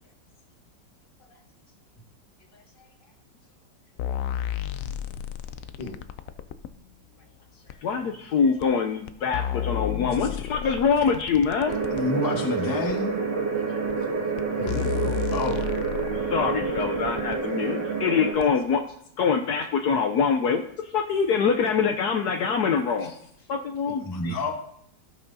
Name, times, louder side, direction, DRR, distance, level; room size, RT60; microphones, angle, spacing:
voice 1, 2.5-2.9 5.8-6.0 7.5-7.8 13.5-13.8 14.6-15.2 23.0-23.2, left 2 dB, 35° left, 2 dB, 1.2 m, -37 dB
sound 1, 4.0-6.7 7.7-7.8 8.6-8.7 9.1-12.1 12.9-13.0 13.9-14.0 14.4-14.5 14.7-17.4 18.4-18.5, left 10 dB, 85° left, 0.7 m, -32 dB
voice 2, 7.8-11.7 16.3-18.8 19.2-20.6 20.9-23.1 23.5-24.4, left 6 dB, 70° left, 5 dB, 1.1 m, -24 dB
sound 2, 11.6-18.3, right 4 dB, 65° right, 2.6 m, -28 dB
voice 3, 11.9-13.1 15.3-15.7 24.0-24.5, left 2 dB, 15° left, 2 dB, 0.8 m, -28 dB
17.0 x 5.7 x 2.7 m, 0.70 s
omnidirectional pair, 2.0 m